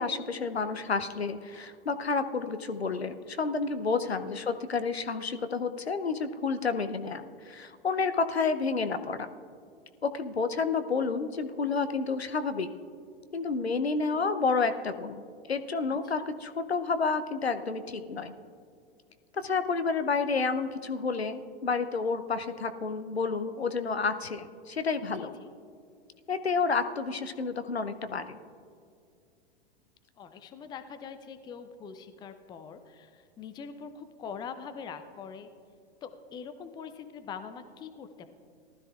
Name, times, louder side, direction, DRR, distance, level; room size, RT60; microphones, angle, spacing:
voice 1, 0.0-9.3 10.0-12.7 13.3-15.2 15.5-18.3 19.3-25.3 26.3-28.4, left 4 dB, 85° left, 10 dB, 0.7 m, -30 dB
voice 2, 4.3-4.6 15.9-16.3 25.1-25.5 30.2-35.5 36.0-38.3, left 6 dB, 15° left, 9 dB, 0.5 m, -43 dB
18.5 x 13.0 x 2.4 m, 2.3 s
figure-of-eight pair, 100°, 31 cm